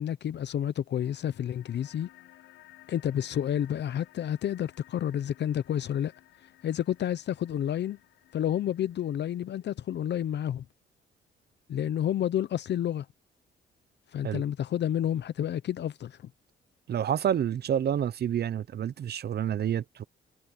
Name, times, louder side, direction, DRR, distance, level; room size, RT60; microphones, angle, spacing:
voice 1, 0.0-2.1 2.9-6.1 6.6-8.0 8.3-10.6 11.7-13.1 14.1-16.2, left 10 dB, 60° left, 0.8 m, -30 dB
sound 1, 0.9-9.9, left 15 dB, 85° left, 4.2 m, -58 dB
voice 2, 16.9-20.0, right 9 dB, 55° right, 0.8 m, -28 dB
cardioid pair, 90°, 20 cm